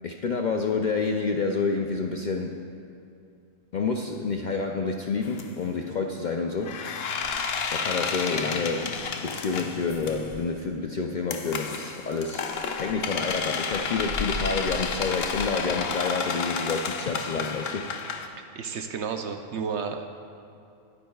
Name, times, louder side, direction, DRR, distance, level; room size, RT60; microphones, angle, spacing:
voice 1, 0.0-2.6 3.7-6.8 7.7-17.9, left 4 dB, 80° left, 2 dB, 0.4 m, -29 dB
sound 1, 5.2-5.4 6.6-10.4 11.3-18.3, left 5 dB, 60° left, 0.8 m, -31 dB
voice 2, 18.4-20.1, right 6 dB, 65° right, 6 dB, 0.8 m, -32 dB
21.0 x 9.2 x 2.3 m, 2.5 s
omnidirectional pair, 1.4 m